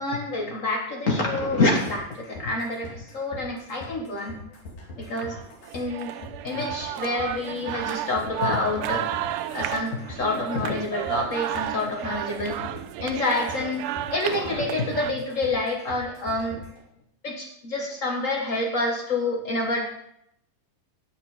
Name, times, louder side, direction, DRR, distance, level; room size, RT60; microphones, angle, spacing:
voice 1, 0.0-4.4 5.0-5.4 5.7-6.1 6.4-9.1 9.5-13.8 14.1-16.6 17.2-19.9, left 2 dB, 85° left, 0 dB, 0.7 m, -27 dB
sound 1, 1.4-16.8, left 1 dB, 65° left, 3.9 m, -43 dB
sound 2, 5.2-15.1, right 11 dB, 80° right, 2.0 m, -32 dB
18.0 x 6.7 x 4.9 m, 0.73 s
omnidirectional pair, 3.9 m